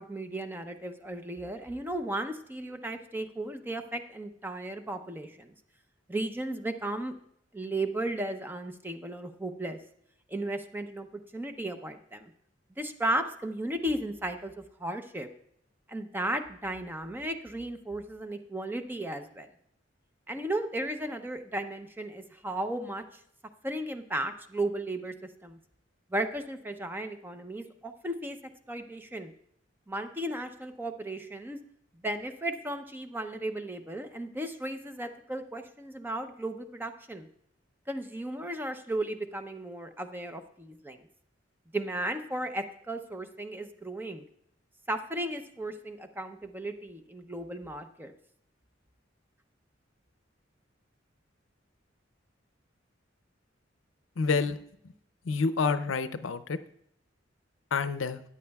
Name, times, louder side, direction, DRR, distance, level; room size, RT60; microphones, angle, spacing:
voice 1, 0.0-5.5 6.1-7.1 7.5-9.8 10.3-12.3 12.8-15.3 15.9-19.5 20.3-23.0 23.6-25.1 25.4-25.6 26.1-28.4 28.7-29.3 29.9-31.6 32.0-37.3 37.9-41.1 41.7-44.2 44.9-48.1, right 1 dB, 10° right, 8 dB, 0.6 m, -35 dB
voice 2, 54.2-54.6 55.3-56.6 57.7-58.2, left 4 dB, 85° left, 12 dB, 0.6 m, -28 dB
14.0 x 9.6 x 2.3 m, 0.69 s
head